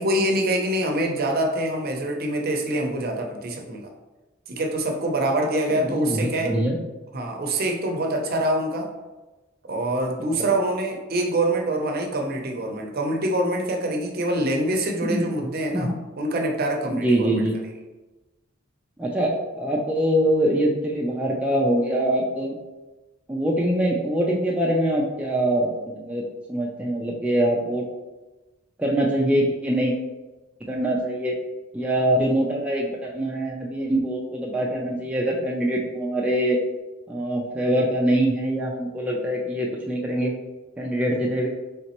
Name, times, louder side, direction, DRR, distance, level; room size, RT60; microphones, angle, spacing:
voice 1, 0.0-3.9 4.5-6.5 7.1-8.9 9.7-15.9 16.2-17.4, right 1 dB, 50° right, 2 dB, 0.6 m, -25 dB
voice 2, 5.7-6.8 10.2-10.5 15.0-15.3 15.7-16.0 16.9-17.6 19.0-22.6 23.3-26.2 26.5-27.9 28.8-29.9 30.7-31.4 31.7-36.6 37.1-40.3 40.8-41.5, right 1 dB, 5° right, -2 dB, 0.3 m, -24 dB
4.0 x 3.3 x 2.9 m, 1.1 s
head